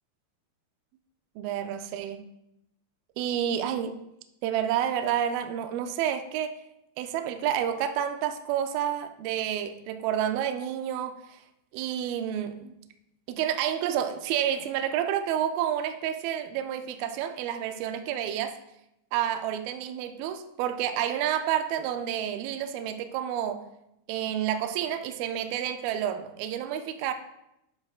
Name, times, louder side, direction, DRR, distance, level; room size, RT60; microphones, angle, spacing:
voice 1, 1.4-2.2 3.2-4.0 4.4-6.6 7.0-11.4 11.7-12.7 13.3-18.5 19.1-23.6 24.1-27.1, right 10 dB, 80° right, 7 dB, 2.3 m, -29 dB
9.5 x 6.1 x 2.4 m, 0.83 s
omnidirectional pair, 4.5 m